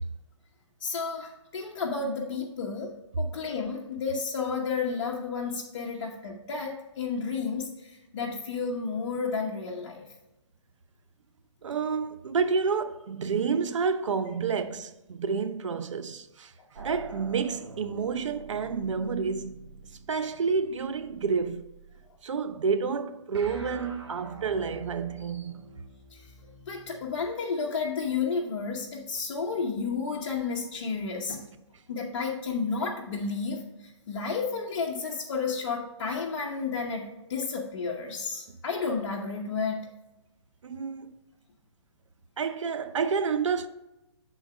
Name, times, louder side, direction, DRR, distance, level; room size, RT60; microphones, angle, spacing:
voice 1, 0.8-10.1 26.1-26.3 26.7-31.4 31.9-39.8, left 5 dB, 55° left, 1.0 m, -32 dB
voice 2, 11.6-16.5 16.8-19.7 20.1-21.6 22.2-25.6 40.6-41.1 42.4-43.7, right 5 dB, 80° right, 0.6 m, -29 dB
sound 1, 16.7-22.1 23.3-27.3, right 4 dB, 60° right, 1.3 m, -46 dB
7.9 x 4.0 x 4.9 m
hypercardioid pair, 150°, 15 cm